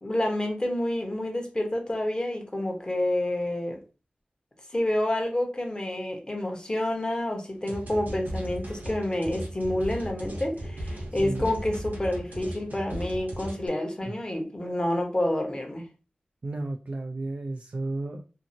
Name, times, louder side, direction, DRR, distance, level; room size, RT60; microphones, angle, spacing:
voice 1, 0.0-3.8 4.7-15.9, left 1 dB, 30° left, 0.9 m, -28 dB
sound 1, 7.7-13.7, right 1 dB, 75° right, 0.9 m, -36 dB
voice 2, 11.2-11.5 16.4-18.2, right 2 dB, 50° right, 0.4 m, -33 dB
2.7 x 2.6 x 2.6 m
wide cardioid pair, 70°, 3 cm